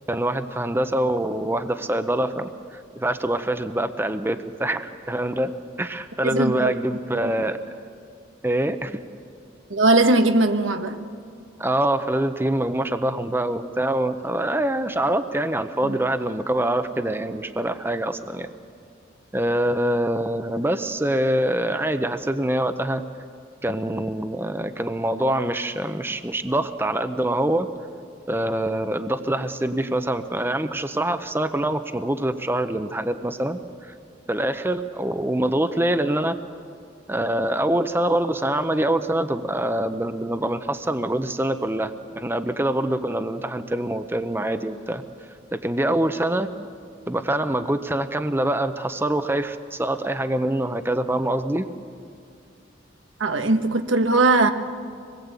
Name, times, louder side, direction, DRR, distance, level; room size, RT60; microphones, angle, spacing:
voice 1, 0.1-5.5 5.8-7.6 8.4-9.0 11.6-18.5 19.3-23.0 23.6-27.7 28.3-33.9 34.3-36.4 37.1-45.0 45.5-46.5 47.1-51.7, right 1 dB, 10° right, 9 dB, 0.8 m, -25 dB
voice 2, 6.2-6.7 9.7-11.0 15.9-16.0 53.2-54.5, right 2 dB, 90° right, 6 dB, 1.4 m, -19 dB
25.5 x 21.0 x 8.3 m, 2.4 s
head